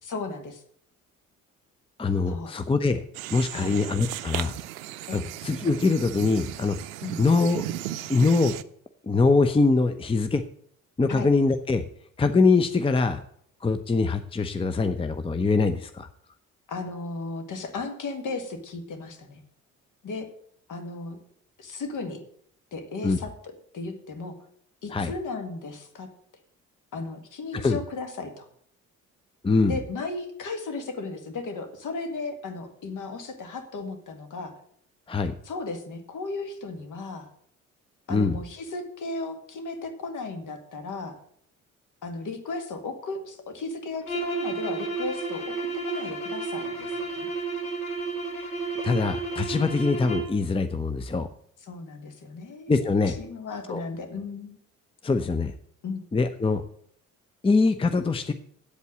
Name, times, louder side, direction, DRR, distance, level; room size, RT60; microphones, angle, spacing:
voice 1, 0.0-0.6 2.3-2.5 3.5-3.8 5.1-5.3 7.0-7.2 11.1-11.3 16.7-19.4 20.0-20.3 20.7-21.2 21.6-22.2 22.7-24.4 24.8-26.1 26.9-28.5 29.7-34.5 35.4-37.3 38.1-41.2 42.0-47.3 51.7-54.6 55.8-56.0, left 3 dB, 50° left, 7 dB, 2.0 m, -35 dB
voice 2, 2.0-3.0 3.3-4.5 5.1-6.8 7.2-7.6 8.1-8.5 9.0-10.4 11.0-11.8 12.2-13.2 13.6-16.1 23.0-23.2 24.9-25.1 27.5-27.8 29.4-29.8 35.1-35.3 38.1-38.4 48.8-51.3 52.7-53.1 53.7-53.8 55.0-55.5 56.1-56.6 57.4-58.3, left 3 dB, 15° left, 10 dB, 0.7 m, -23 dB
sound 1, 3.1-8.6, right 14 dB, 75° right, 0.6 m, -36 dB
sound 2, 44.0-50.4, right 3 dB, 80° left, 1.8 m, -31 dB
8.2 x 8.2 x 7.7 m, 0.65 s
figure-of-eight pair, 45°, 41 cm